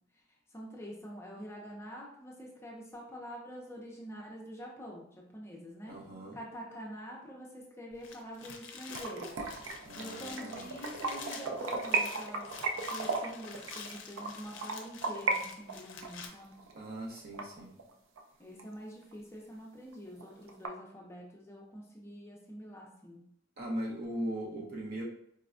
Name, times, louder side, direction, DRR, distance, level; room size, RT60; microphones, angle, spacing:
voice 1, 0.5-5.9 6.3-9.3 10.0-12.5 12.9-16.6 18.4-23.2, equal, 15° left, -2 dB, 0.5 m, -46 dB
voice 2, 5.9-6.4 9.8-10.8 16.7-17.7 23.6-25.0, right 1 dB, 50° right, -2 dB, 0.8 m, -39 dB
sound 1, 7.9-16.3, left 5 dB, 70° left, 0.5 m, -48 dB
sound 2, 8.9-15.4 15.7-18.2 18.6-18.7 19.1-19.2 19.6-19.7 19.9-20.7, right 4 dB, 85° right, 0.5 m, -35 dB
4.1 x 2.2 x 2.4 m, 0.72 s
head